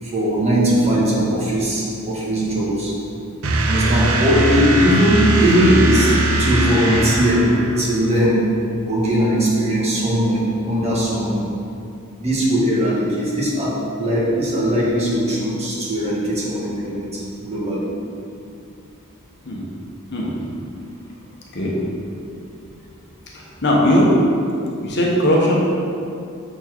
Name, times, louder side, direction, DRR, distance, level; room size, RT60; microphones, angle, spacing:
voice 1, 0.0-2.9 3.7-6.1 6.4-8.5 8.9-11.4 12.2-17.9, equal, 30° right, -6 dB, 1.6 m, -19 dB
sound 1, 3.4-8.1, right 2 dB, 65° right, 0.6 m, -20 dB
voice 2, 23.3-24.1 24.8-25.7, left 1 dB, 50° left, -3 dB, 1.1 m, -18 dB
6.9 x 4.5 x 4.5 m, 2.6 s
head